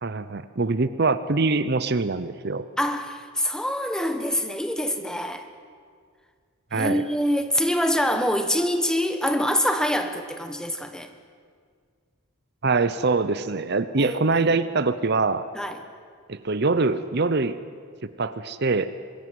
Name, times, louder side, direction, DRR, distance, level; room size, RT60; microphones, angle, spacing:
voice 1, 0.0-2.6 6.7-7.0 12.6-15.5 16.3-17.6 18.0-18.9, right 3 dB, 50° right, 13 dB, 0.7 m, -24 dB
voice 2, 2.8-5.5 6.7-11.1 14.0-14.5 15.5-15.8, equal, 5° left, 7 dB, 1.3 m, -25 dB
24.5 x 20.5 x 9.4 m, 2.1 s
head